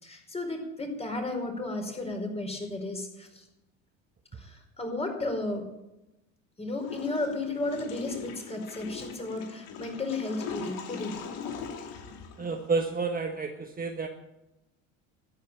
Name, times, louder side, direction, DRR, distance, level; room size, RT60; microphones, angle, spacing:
voice 1, 0.0-3.4 4.4-5.7 6.6-11.1, left 2 dB, 15° left, 3 dB, 5.0 m, -33 dB
Water / Toilet flush, 6.8-13.0, left 5 dB, 65° left, 2.8 m, -40 dB
voice 2, 12.4-14.1, right 4 dB, 25° right, 4 dB, 1.4 m, -30 dB
13.5 x 9.2 x 8.8 m, 0.93 s
supercardioid pair, 85°, 37 cm